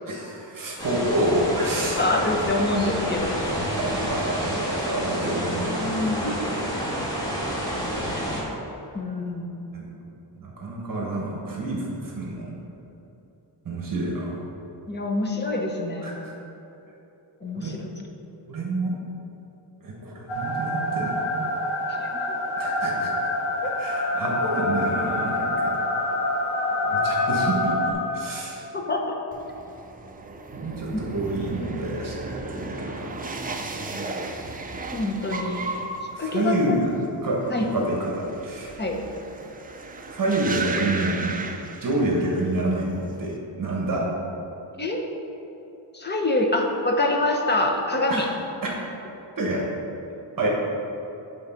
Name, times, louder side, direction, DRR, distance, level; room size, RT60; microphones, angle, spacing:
voice 1, 0.0-2.1 2.7-2.9 3.2-3.3 3.8-6.0 9.7-9.9 10.4-12.5 13.6-14.4 16.0-16.3 17.5-17.7 18.5-18.9 19.8-21.5 22.6-23.1 23.8-25.7 26.8-28.6 30.5-33.2 33.5-33.6 36.1-36.9 37.2-37.4 37.7-38.7 40.1-41.4 41.8-44.0 48.1-48.2 49.4-49.6 50.4-50.5, right 1 dB, 50° right, -3 dB, 1.3 m, -28 dB
sound 1, 0.8-8.4, equal, 10° left, 1.5 m, -29 dB
voice 2, 2.0-3.4 5.8-6.7 8.9-9.5 14.9-16.2 17.4-17.8 21.9-22.1 23.6-23.7 28.7-29.2 30.9-31.0 34.9-35.6 36.2-36.8 37.5-37.7 38.8-39.0 44.8-45.0 45.9-48.3, left 2 dB, 25° left, 1 dB, 0.7 m, -25 dB
sound 2, 20.3-27.9, left 1 dB, 75° left, 1.2 m, -26 dB
sound 3, 29.3-42.4 42.7-43.3, right 3 dB, 20° right, 0.4 m, -35 dB
8.6 x 3.9 x 5.7 m, 3.0 s
wide cardioid pair, 170°, 43 cm